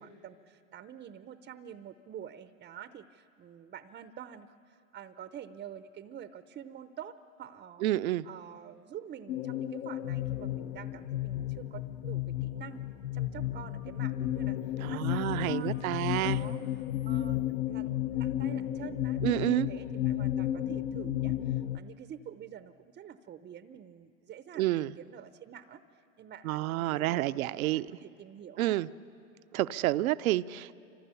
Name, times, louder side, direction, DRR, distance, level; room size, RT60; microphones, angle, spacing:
voice 1, 0.0-7.8 8.2-12.9 13.1-16.6 17.0-28.8, right 9 dB, 20° right, 11 dB, 0.7 m, -47 dB
voice 2, 7.8-8.2 14.8-16.4 19.2-19.7 24.6-24.9 26.4-27.9 28.6-28.9 29.5-30.8, right 15 dB, 70° right, 14 dB, 0.8 m, -29 dB
sound 1, 9.3-21.8, left 12 dB, 60° left, 1.0 m, -33 dB
29.0 x 25.5 x 7.0 m, 2.6 s
hypercardioid pair, 115°, 43 cm